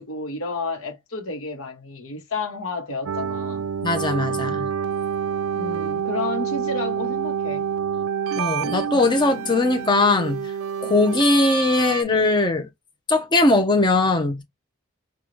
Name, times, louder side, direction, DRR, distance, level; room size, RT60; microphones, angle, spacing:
voice 1, 0.0-3.7 5.5-7.7, left 3 dB, 85° left, 1.0 m, -31 dB
sound 1, 3.1-12.0, right 7 dB, 75° right, 0.3 m, -27 dB
voice 2, 3.8-4.7 8.4-10.5 10.8-12.7 13.1-14.4, left 2 dB, 20° left, 0.6 m, -20 dB
3.8 x 2.3 x 3.1 m
head